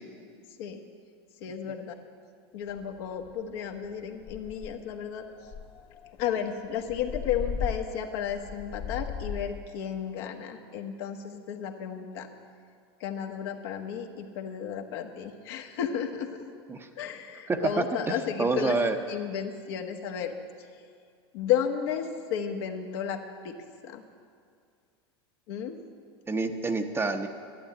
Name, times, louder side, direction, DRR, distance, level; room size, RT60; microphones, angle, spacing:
voice 1, 1.4-1.9 2.5-5.2 6.2-12.3 13.0-16.3 17.0-18.8 19.1-20.3 21.3-23.6 23.8-24.0 25.5-25.8, left 8 dB, 65° left, 4 dB, 1.3 m, -33 dB
sound 1, 2.8-2.9 3.3-3.5 3.8-3.9 4.2-4.9 5.5-9.6, left 6 dB, 35° left, 0.5 m, -37 dB
voice 2, 17.5-18.1 18.4-19.0 26.3-27.3, right 3 dB, 15° right, 6 dB, 0.8 m, -27 dB
12.0 x 8.1 x 8.8 m, 2.2 s
hypercardioid pair, 105°, 14 cm